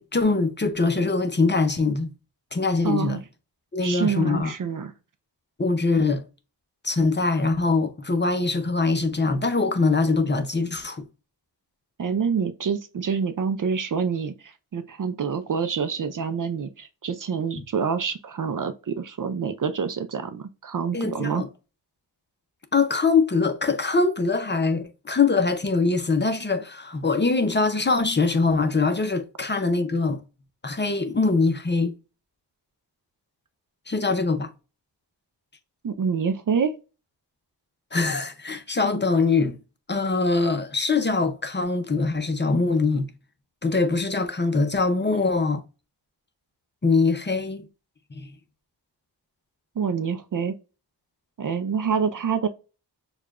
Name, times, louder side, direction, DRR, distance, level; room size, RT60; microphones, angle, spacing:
voice 1, 0.0-2.1 2.5-3.2 3.7-4.5 5.6-6.2 6.8-11.0 20.9-21.5 22.7-30.2 30.6-31.9 33.9-34.5 37.9-39.6 39.9-43.1 43.6-45.6 46.8-47.6 48.1-48.3, left 3 dB, 25° left, 0.6 m, -23 dB
voice 2, 2.8-3.2 3.8-4.9 12.0-21.4 35.8-36.7 49.8-50.5 51.4-52.5, right 6 dB, 50° right, 0.5 m, -27 dB
6.4 x 2.4 x 2.4 m
wide cardioid pair, 95°, 42 cm